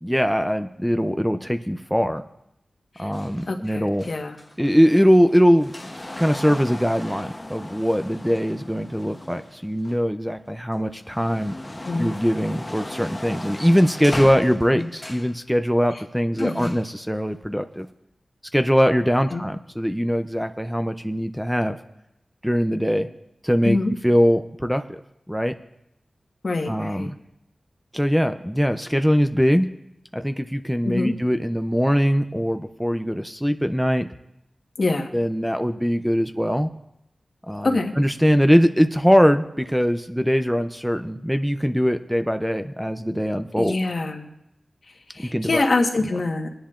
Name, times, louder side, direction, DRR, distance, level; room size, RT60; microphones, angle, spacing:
voice 1, 0.0-2.2 3.0-4.1 4.6-11.5 12.0-17.9 18.5-21.8 22.4-23.1 23.4-23.8 24.0-25.0 25.3-25.5 26.7-27.1 27.9-29.7 30.1-34.1 35.1-36.7 37.5-43.8 45.2-45.7, equal, ahead, 8 dB, 0.5 m, -21 dB
sound 1, 3.1-10.3 10.8-15.4 16.3-16.9 17.8-17.9, left 1 dB, 20° left, 0.8 m, -37 dB
voice 2, 3.5-4.4 11.8-12.1 14.7-14.9 16.4-16.7 19.3-19.4 23.6-23.9 26.4-27.1 30.8-31.1 34.8-35.1 37.6-37.9 43.6-44.3 45.1-46.5, left 2 dB, 60° left, 4 dB, 1.2 m, -25 dB
21.5 x 10.0 x 2.5 m, 0.83 s
wide cardioid pair, 85°, 0 cm